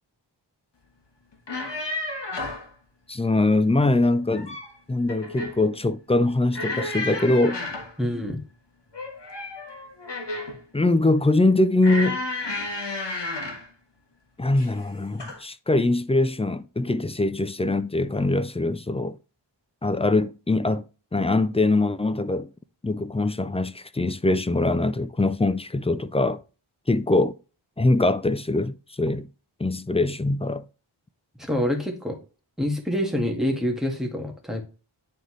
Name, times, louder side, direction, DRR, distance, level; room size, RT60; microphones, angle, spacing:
sound 1, 1.3-2.7 4.1-4.7 5.1-5.6 6.5-7.9 8.9-10.6 11.8-13.7 14.5-14.8 15.2-15.4, left 2 dB, 55° left, 1.5 m, -32 dB
voice 1, 3.1-4.6 4.9-7.6 10.7-12.3 14.4-19.2 19.8-20.8 21.1-22.5 22.8-26.4 26.9-27.4 27.8-29.3 29.6-30.7, left 2 dB, 15° left, 0.3 m, -23 dB
voice 2, 8.0-8.4 31.4-32.2 32.6-34.6, equal, ahead, 1.7 m, -26 dB
9.4 x 3.9 x 3.2 m
wide cardioid pair, 70°, 49 cm